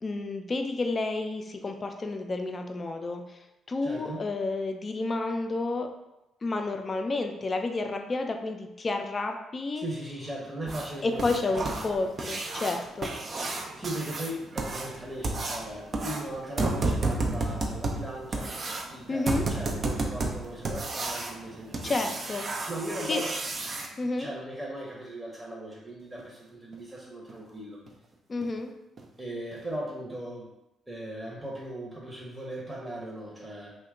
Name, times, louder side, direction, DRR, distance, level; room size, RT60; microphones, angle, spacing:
voice 1, 0.0-3.4 3.7-5.9 6.4-9.9 11.0-13.1 19.1-19.4 21.8-22.5 23.1-23.2 24.0-24.3 28.3-28.7, left 3 dB, 40° left, 5 dB, 0.4 m, -30 dB
voice 2, 3.8-4.2 9.8-11.8 13.7-22.1 22.7-23.3 23.8-27.8 29.2-30.5 30.9-33.8, right 1 dB, 10° right, -4 dB, 0.8 m, -38 dB
sound 1, 10.7-23.9 26.2-26.3 26.7-26.8 27.3-27.4 27.9-28.0 28.4-28.6 29.0-29.1 29.5-29.6, right 2 dB, 50° right, 0.5 m, -32 dB
2.8 x 2.2 x 3.6 m, 0.92 s
hypercardioid pair, 50°, 0 cm